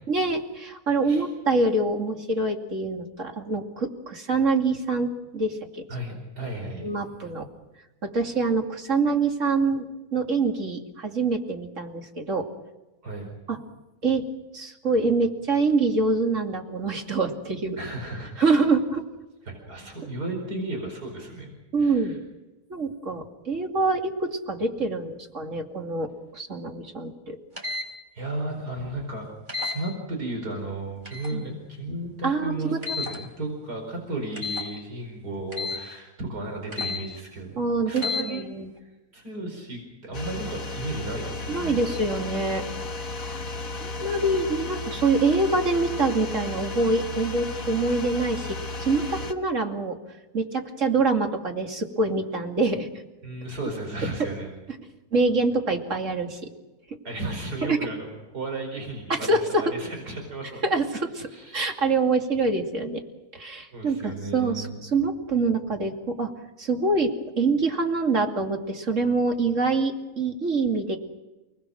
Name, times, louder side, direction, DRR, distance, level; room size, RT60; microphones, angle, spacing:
voice 1, 0.1-5.8 6.8-7.5 8.0-9.9 10.1-12.5 13.5-13.6 14.0-14.2 14.5-17.8 18.4-19.0 21.7-22.2 22.7-27.4 31.3-31.4 32.2-32.8 37.6-38.7 41.5-42.6 43.2-43.4 43.8-50.0 50.3-52.9 55.1-56.5 57.6-57.8 59.1-59.6 60.6-63.0 63.3-66.3 66.6-71.0, right 3 dB, 50° right, 3 dB, 2.9 m, -25 dB
voice 2, 5.9-6.8 13.0-13.3 17.8-18.6 19.4-21.5 21.8-22.2 28.1-29.3 29.6-37.6 37.9-38.4 38.8-41.8 53.2-54.5 57.0-58.1 58.3-60.6 61.3-61.7 63.7-64.8, right 2 dB, 80° right, 2 dB, 5.4 m, -34 dB
sound 1, 27.6-27.9 29.5-29.8 31.0-31.4 32.8-33.2 34.4-34.7 35.5-35.8 36.7-37.0 37.9-38.2, left 4 dB, 30° right, 4.7 m, -31 dB
sound 2, 40.1-49.3, left 2 dB, 60° left, 1.9 m, -34 dB
30.0 x 20.0 x 6.5 m, 1.1 s
omnidirectional pair, 1.7 m